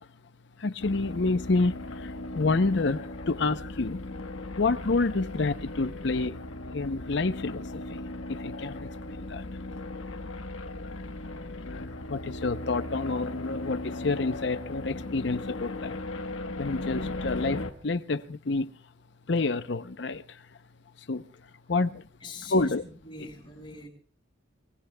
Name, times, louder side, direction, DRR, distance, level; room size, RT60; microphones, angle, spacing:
voice 1, 0.6-4.0 4.6-6.4 6.7-8.0 8.3-9.5 11.7-11.8 12.1-16.0 16.6-18.7 19.3-20.4 21.1-21.2 21.7-22.0 22.5-22.8, left 3 dB, 60° left, 0.6 m, -28 dB
sound 1, 0.8-17.7, left 2 dB, 90° left, 1.2 m, -37 dB
voice 2, 22.2-23.9, left 3 dB, 25° left, 5.3 m, -44 dB
26.0 x 22.5 x 2.2 m
head